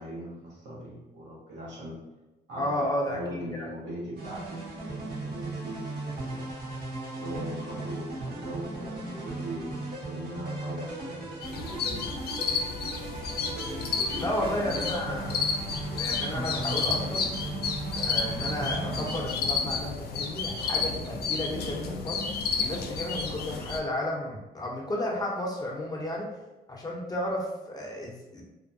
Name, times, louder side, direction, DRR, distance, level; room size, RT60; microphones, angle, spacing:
voice 1, 0.0-2.0 2.5-2.7 3.1-6.5 7.2-11.2 13.9-14.9, equal, 85° right, -6 dB, 1.1 m, -40 dB
voice 2, 2.6-3.7 13.6-13.9 14.2-15.6 16.0-17.3 18.0-22.2 22.6-26.3 26.7-28.4, left 1 dB, 20° left, -2 dB, 0.7 m, -33 dB
sound 1, 4.2-19.3, right 2 dB, 60° right, 1.0 m, -37 dB
sound 2, 11.4-23.8, left 5 dB, 65° left, 0.4 m, -31 dB
2.6 x 2.2 x 2.6 m, 1.0 s
cardioid pair, 70°, 18 cm